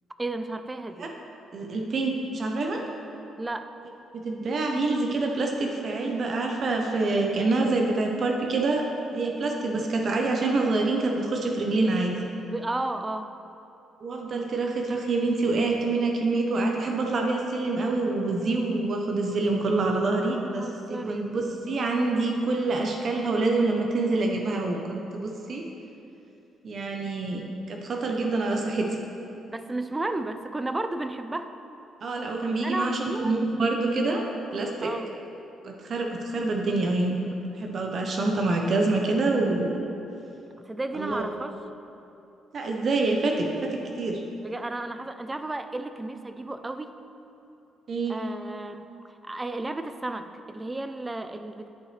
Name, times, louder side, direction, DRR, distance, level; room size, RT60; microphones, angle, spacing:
voice 1, 0.2-1.1 3.4-3.7 12.5-13.3 20.6-21.3 29.5-31.5 32.6-33.3 34.8-35.1 40.7-41.6 44.4-46.9 48.1-51.7, right 2 dB, 15° right, 9 dB, 0.4 m, -33 dB
voice 2, 1.5-2.8 4.1-8.9 9.1-12.2 14.0-25.6 26.6-27.4 27.7-28.9 32.0-34.2 34.5-34.9 35.6-37.2 37.5-39.8 40.9-41.3 42.5-44.2 47.9-48.2, right 3 dB, 50° right, 1 dB, 0.7 m, -26 dB
9.8 x 5.7 x 3.3 m, 2.8 s
cardioid pair, 90°, 0 cm